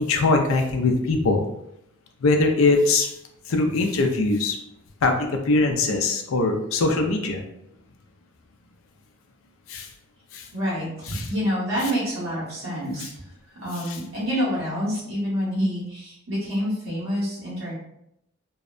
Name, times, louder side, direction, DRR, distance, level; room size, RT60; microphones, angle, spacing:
voice 1, 0.0-1.5 2.2-3.1 3.5-4.6 5.0-7.4 9.7-9.9 10.3-10.5 11.1-11.3 13.0-13.1 13.8-14.0, left 3 dB, 75° left, 4 dB, 0.4 m, -22 dB
voice 2, 10.5-13.1 13.6-17.7, equal, 85° right, -8 dB, 1.3 m, -27 dB
2.6 x 2.1 x 2.4 m, 0.79 s
head